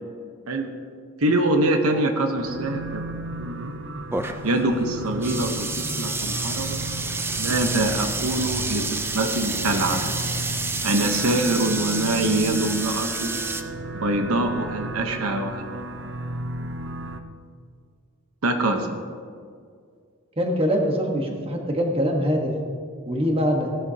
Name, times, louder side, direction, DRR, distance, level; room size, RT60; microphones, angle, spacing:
voice 1, 1.2-3.0 3.4-3.7 4.4-6.8 7.4-10.0 10.8-13.3 14.0-15.8 18.4-19.0, right 1 dB, 80° right, 5 dB, 1.0 m, -24 dB
sound 1, 2.4-17.2, right 2 dB, 55° right, 0.7 m, -34 dB
sound 2, 4.1-13.6, right 3 dB, 10° right, 0.4 m, -29 dB
voice 2, 20.4-22.5 23.1-23.7, equal, 25° right, 1 dB, 1.3 m, -23 dB
16.5 x 12.0 x 2.9 m, 2.1 s
head